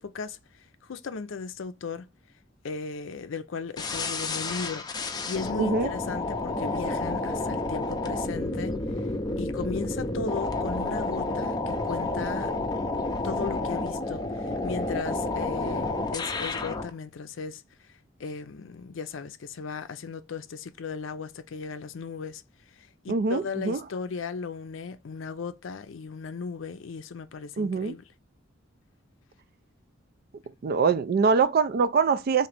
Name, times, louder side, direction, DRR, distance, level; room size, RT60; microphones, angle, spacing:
voice 1, 0.0-2.1 2.6-9.1 9.4-12.5 13.2-17.6 17.9-22.4 22.8-28.0, left 5 dB, 80° left, 0.5 m, -36 dB
sound 1, 3.8-16.9, left 2 dB, 20° left, 0.5 m, -30 dB
voice 2, 5.6-5.9 23.1-23.8 27.6-27.9 30.6-32.5, right 5 dB, 50° right, 0.4 m, -23 dB
3.7 x 2.6 x 3.3 m
head